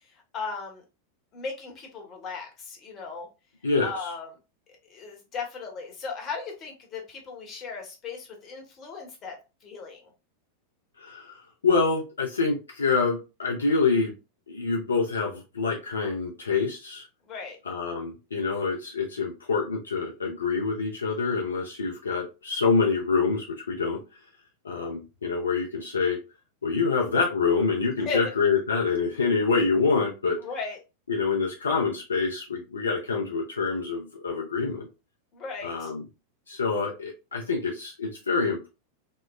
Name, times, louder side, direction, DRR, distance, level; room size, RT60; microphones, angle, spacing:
voice 1, 0.3-0.8 1.3-3.3 3.8-4.3 4.9-10.1 17.3-17.6 28.0-28.2 30.4-30.8 35.3-35.9, left 4 dB, 30° left, 1 dB, 0.9 m, -36 dB
voice 2, 3.6-4.1 11.0-11.4 11.6-14.1 14.5-17.1 17.7-24.0 24.6-26.2 26.6-30.4 31.1-34.9 35.6-36.0 36.5-38.7, left 4 dB, 75° left, 0 dB, 0.5 m, -26 dB
3.0 x 2.0 x 2.2 m, 0.29 s
figure-of-eight pair, 90°, 0 cm